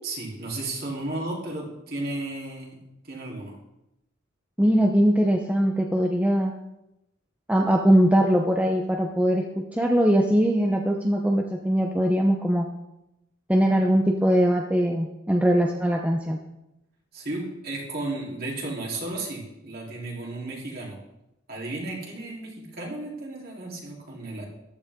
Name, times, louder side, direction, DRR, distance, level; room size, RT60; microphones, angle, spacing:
voice 1, 0.0-3.6 17.1-21.0 21.5-24.5, right 2 dB, 45° right, -3 dB, 3.7 m, -34 dB
voice 2, 4.6-6.5 7.5-9.4 9.7-12.7 13.5-16.4, equal, 5° right, 2 dB, 0.7 m, -21 dB
14.5 x 12.0 x 3.7 m, 0.87 s
head